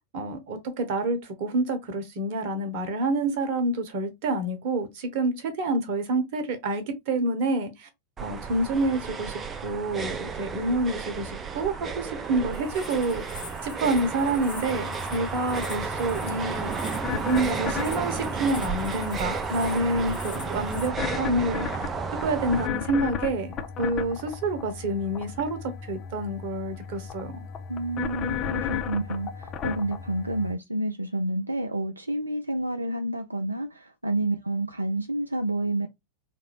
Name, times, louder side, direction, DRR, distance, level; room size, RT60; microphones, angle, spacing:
voice 1, 0.1-7.9 8.2-21.9 22.2-25.6 25.9-27.4, right 2 dB, 45° right, 1.0 m, -28 dB
sound 1, 8.2-22.7, right 5 dB, 20° right, 0.5 m, -33 dB
sound 2, 12.5-20.9, left 5 dB, 65° left, 1.4 m, -44 dB
sound 3, 14.7-30.5, left 7 dB, 30° left, 0.5 m, -35 dB
voice 2, 27.7-35.9, right 1 dB, 80° right, 0.3 m, -29 dB
3.7 x 2.5 x 3.1 m
figure-of-eight pair, 90°, 0 cm